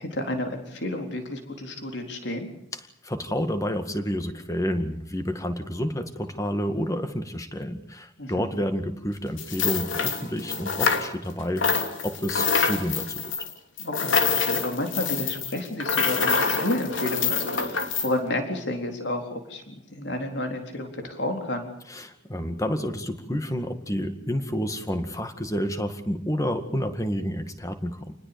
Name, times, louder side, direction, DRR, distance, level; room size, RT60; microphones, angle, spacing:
voice 1, 0.0-2.5 8.2-8.5 13.8-21.7, left 1 dB, 60° left, 4 dB, 4.0 m, -31 dB
voice 2, 3.0-13.2 21.9-28.1, equal, 15° left, 8 dB, 2.0 m, -29 dB
sound 1, 9.4-11.3 11.6-18.1, left 5 dB, 90° left, 2.9 m, -26 dB
28.5 x 20.5 x 7.0 m, 0.68 s
head